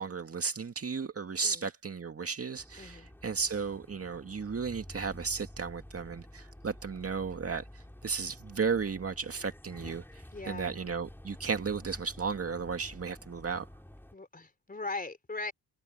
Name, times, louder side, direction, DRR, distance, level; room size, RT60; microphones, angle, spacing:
voice 1, 0.0-10.0 10.5-13.7, right 5 dB, 35° right, 2.1 m, -34 dB
sound 1, 2.5-14.1, left 1 dB, 5° left, 3.9 m, -50 dB
voice 2, 2.8-3.1 10.3-10.8 14.1-15.5, left 3 dB, 20° left, 3.4 m, -39 dB
cardioid pair, 80°, 39 cm